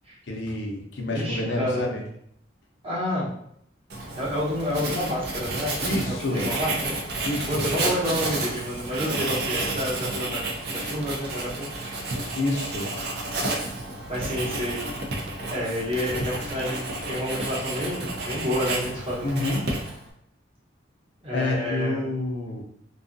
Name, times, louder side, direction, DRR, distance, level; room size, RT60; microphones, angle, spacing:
voice 1, 0.3-2.0 5.8-6.5 7.3-7.7 12.3-12.9 19.2-19.7 21.3-22.6, left 2 dB, 70° left, 1 dB, 0.6 m, -28 dB
voice 2, 1.0-1.9 2.8-3.3 4.2-12.1 14.1-14.8 15.5-19.3 21.2-22.1, equal, 30° right, -7 dB, 0.9 m, -29 dB
Writing, 3.9-20.1, right 2 dB, 55° right, 0.5 m, -31 dB
2.6 x 2.3 x 2.5 m, 0.69 s
head